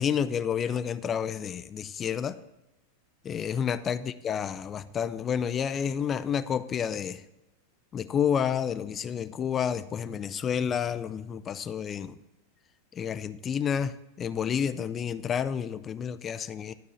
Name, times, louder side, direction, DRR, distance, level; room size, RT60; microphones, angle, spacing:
voice 1, 0.0-2.4 3.2-7.2 7.9-12.2 12.9-16.7, left 8 dB, 25° left, 0.5 m, -30 dB
12.5 x 4.7 x 7.0 m
figure-of-eight pair, 90°, 0 cm